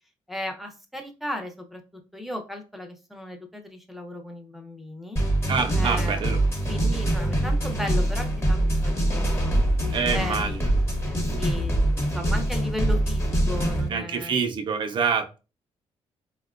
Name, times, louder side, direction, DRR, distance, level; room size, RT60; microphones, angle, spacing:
voice 1, 0.3-1.8 2.1-5.2 5.8-6.2 6.7-9.5 10.1-10.5 11.0-14.4, left 1 dB, ahead, 0.6 m, -35 dB
sound 1, 5.2-13.9, right 1 dB, 25° left, 1.0 m, -24 dB
voice 2, 5.5-6.4 9.9-10.6 13.9-15.4, right 6 dB, 45° right, 0.5 m, -26 dB
4.1 x 2.1 x 2.4 m
cardioid pair, 110°, 11 cm